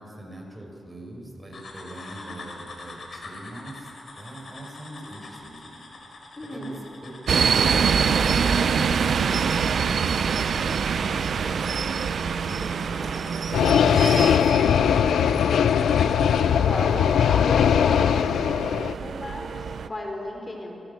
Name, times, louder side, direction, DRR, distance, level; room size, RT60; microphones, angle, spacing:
voice 1, 0.0-3.9 4.2-5.9 6.4-6.8 7.0-12.0 12.4-14.9, right 1 dB, 15° right, 1 dB, 7.5 m, -42 dB
sound 1, 1.5-16.5, left 2 dB, 60° left, 5.8 m, -45 dB
voice 2, 6.4-6.8 16.5-20.8, left 1 dB, 35° left, 2 dB, 4.5 m, -34 dB
sound 2, 7.3-19.9, right 6 dB, 70° right, 1.0 m, -26 dB
sound 3, 13.5-18.9, left 8 dB, 85° left, 0.6 m, -20 dB
26.5 x 24.5 x 7.6 m, 3.0 s
cardioid pair, 55°, 0 cm